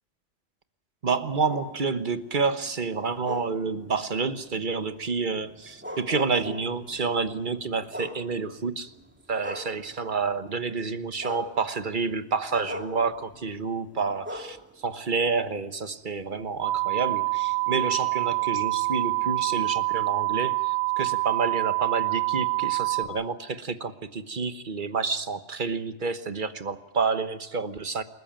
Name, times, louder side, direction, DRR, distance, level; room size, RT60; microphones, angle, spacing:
voice 1, 1.0-8.9 9.3-28.0, right 4 dB, 50° right, 11 dB, 1.4 m, -29 dB
sound 1, 1.1-10.3 10.7-15.9 16.4-19.9, left 1 dB, 10° right, 2.3 m, -44 dB
sound 2, 16.6-23.0, right 26 dB, 35° right, 2.4 m, -26 dB
28.0 x 14.0 x 8.9 m, 0.97 s
omnidirectional pair, 1.1 m